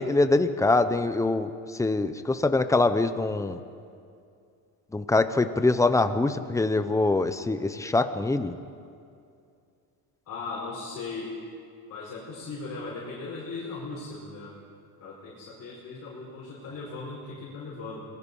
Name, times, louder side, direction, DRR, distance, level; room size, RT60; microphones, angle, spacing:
voice 1, 0.0-3.6 4.9-8.6, left 2 dB, 10° left, 10 dB, 0.8 m, -24 dB
voice 2, 10.3-11.3 11.9-14.6 15.0-18.0, left 3 dB, 40° left, -6 dB, 5.2 m, -38 dB
26.5 x 20.5 x 5.5 m, 2.4 s
cardioid pair, 150°, 41 cm